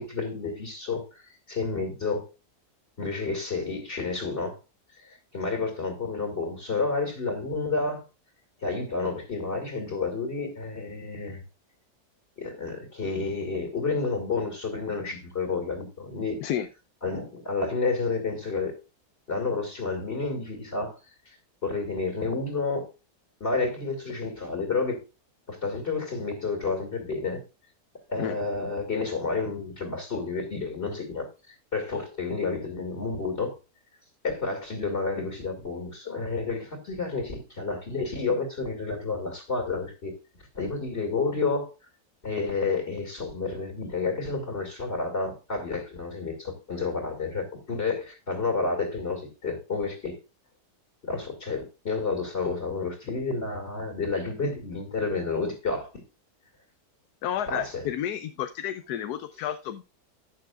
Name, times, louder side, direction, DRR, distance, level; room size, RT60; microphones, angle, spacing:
voice 1, 0.0-2.3 3.0-4.6 5.0-8.0 8.6-11.4 12.4-16.4 17.0-18.8 19.3-21.0 21.3-21.4 21.6-22.9 23.4-25.0 25.5-27.4 28.1-33.6 34.2-40.2 40.5-41.7 42.2-50.2 51.0-56.0 57.5-57.9, left 4 dB, 40° left, 2.4 m, -30 dB
voice 2, 57.2-59.8, left 10 dB, 85° left, 1.2 m, -31 dB
12.0 x 8.9 x 2.4 m
omnidirectional pair, 1.6 m